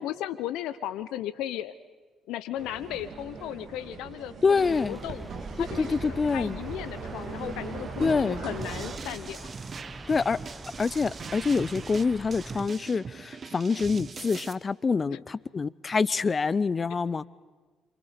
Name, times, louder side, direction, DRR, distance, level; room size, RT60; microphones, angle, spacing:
voice 1, 0.0-1.7 2.3-5.3 5.6-9.5 15.1-15.2, left 12 dB, 70° left, 0.7 m, -36 dB
sound 1, 2.6-9.0, right 4 dB, 60° right, 2.8 m, -39 dB
voice 2, 4.4-5.0 5.6-6.6 8.0-8.4 10.1-10.4 10.8-17.2, left 4 dB, 35° left, 0.7 m, -26 dB
sound 2, 4.6-12.6, right 1 dB, 15° right, 1.1 m, -44 dB
sound 3, 8.6-14.5, right 5 dB, 45° right, 1.3 m, -41 dB
28.5 x 26.0 x 5.2 m
hypercardioid pair, 50°, 0 cm